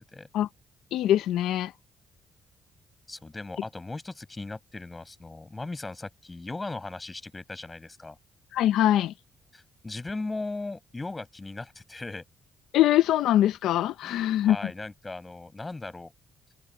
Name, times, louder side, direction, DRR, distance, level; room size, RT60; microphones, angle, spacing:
voice 1, 0.9-1.7 8.5-9.1 12.7-14.6, left 12 dB, 85° left, 0.7 m, -23 dB
voice 2, 3.1-8.2 9.5-12.2 14.0-16.1, left 2 dB, 20° left, 7.9 m, -38 dB
cardioid pair, 90°, 0 cm